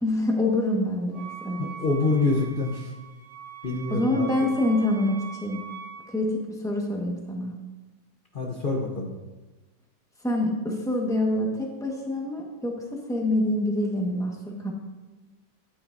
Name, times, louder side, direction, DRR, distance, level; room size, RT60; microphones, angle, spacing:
voice 1, 0.0-1.7 3.9-5.6 6.1-7.5 10.2-14.7, left 1 dB, ahead, -1 dB, 0.9 m, -26 dB
Wind instrument woodwind instrument, 1.1-6.1, right 7 dB, 85° right, 2.1 m, -42 dB
voice 2, 1.6-2.9 3.6-4.3 8.3-9.1, left 3 dB, 70° left, 0 dB, 0.5 m, -26 dB
12.5 x 8.7 x 2.6 m, 1.2 s
omnidirectional pair, 2.2 m